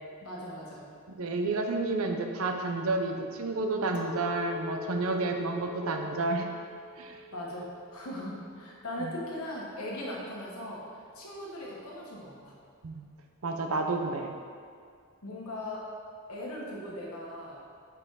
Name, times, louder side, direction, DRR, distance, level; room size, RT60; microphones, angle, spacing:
voice 1, 0.2-0.9 7.3-10.9 11.1-12.5 15.2-15.9 16.3-17.6, left 1 dB, 80° left, -4 dB, 1.3 m, -39 dB
voice 2, 1.1-6.5 7.0-7.2 9.0-9.1 12.8-13.0 13.4-14.3, right 3 dB, 70° right, 4 dB, 0.6 m, -30 dB
Chink clink, 3.9-9.4, left 5 dB, 60° left, 0.5 m, -44 dB
5.5 x 4.6 x 4.7 m, 2.2 s
head